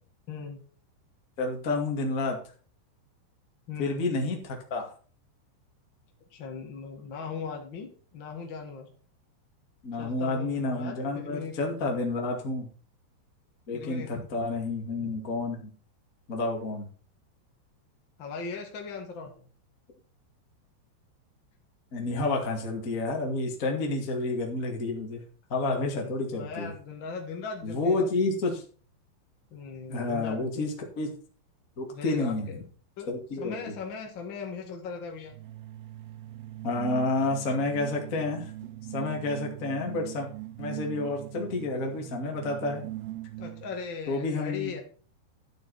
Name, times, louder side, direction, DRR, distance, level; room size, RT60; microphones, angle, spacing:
voice 1, 0.3-0.6 3.7-4.0 6.3-8.9 10.0-11.9 13.7-14.5 18.2-19.5 25.7-28.2 29.5-30.7 31.9-32.6 33.0-33.1 33.3-35.3 43.4-44.8, left 5 dB, 75° left, 2 dB, 1.1 m, -39 dB
voice 2, 1.4-2.4 3.8-4.9 9.8-12.7 13.7-15.7 16.3-16.8 21.9-25.2 25.5-26.7 27.6-28.6 29.9-31.1 31.8-32.5 33.1-33.6 36.6-38.5 38.9-40.3 40.6-42.8 44.1-44.8, left 2 dB, 45° left, 1 dB, 1.0 m, -30 dB
sound 1, 35.3-43.9, right 15 dB, 85° right, 2.5 m, -41 dB
11.5 x 8.0 x 4.1 m, 0.40 s
omnidirectional pair, 5.5 m